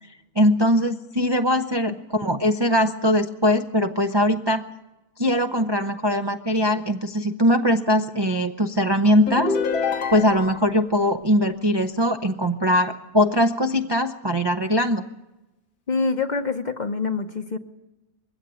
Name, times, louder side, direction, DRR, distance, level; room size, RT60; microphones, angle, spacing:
voice 1, 0.4-4.6 5.2-9.6 10.1-15.0, equal, 30° right, 6 dB, 0.4 m, -21 dB
sound 1, 9.3-10.7, left 4 dB, 90° left, 2.0 m, -26 dB
voice 2, 15.9-17.6, left 4 dB, 40° left, 8 dB, 0.8 m, -25 dB
22.0 x 16.5 x 9.0 m, 1.0 s
omnidirectional pair, 1.6 m